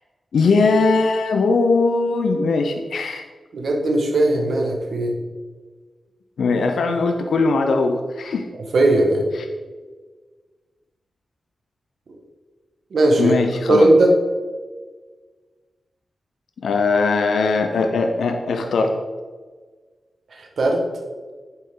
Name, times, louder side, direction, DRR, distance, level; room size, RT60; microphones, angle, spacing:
voice 1, 0.3-3.2 6.4-8.4 13.2-13.9 16.6-18.9, left 3 dB, 85° left, 4 dB, 0.7 m, -20 dB
voice 2, 3.5-5.1 8.7-9.3 12.9-14.1 20.3-20.8, right 2 dB, 70° right, 2 dB, 1.5 m, -18 dB
8.6 x 7.6 x 3.8 m, 1.4 s
cardioid pair, 75°, 0 cm